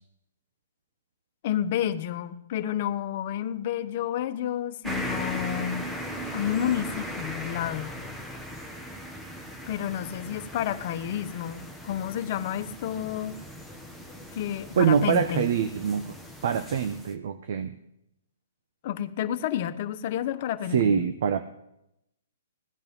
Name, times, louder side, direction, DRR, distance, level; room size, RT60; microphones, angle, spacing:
voice 1, 1.4-5.9 6.3-8.0 9.7-13.4 14.3-15.5 18.8-21.0, left 10 dB, 45° left, 9 dB, 1.1 m, -30 dB
sound 1, 4.8-17.1, equal, 5° right, 1.3 m, -38 dB
voice 2, 14.8-16.1 16.4-17.8 20.7-21.4, right 7 dB, 60° right, 10 dB, 1.0 m, -24 dB
17.5 x 10.5 x 5.4 m, 0.86 s
hypercardioid pair, 150°, 0 cm